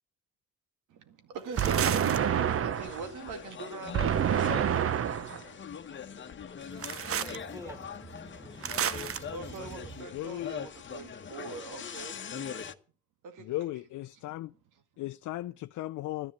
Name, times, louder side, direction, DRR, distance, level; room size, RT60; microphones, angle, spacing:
voice 1, 0.9-4.8 9.3-12.2 13.2-13.5 14.1-14.4 14.7-14.8, right 6 dB, 85° right, 2.2 m, -42 dB
sound 1, 1.6-12.8, left 7 dB, 40° left, 1.2 m, -42 dB
sound 2, 1.6-3.0 3.9-5.4 6.8-7.4 8.6-9.2, right 9 dB, 50° right, 0.8 m, -28 dB
voice 2, 6.6-9.7, right 2 dB, 10° right, 1.5 m, -48 dB
voice 3, 10.1-10.5 13.4-14.5 15.0-16.3, left 15 dB, 75° left, 0.6 m, -36 dB
12.5 x 10.5 x 7.3 m
cardioid pair, 90°, 30 cm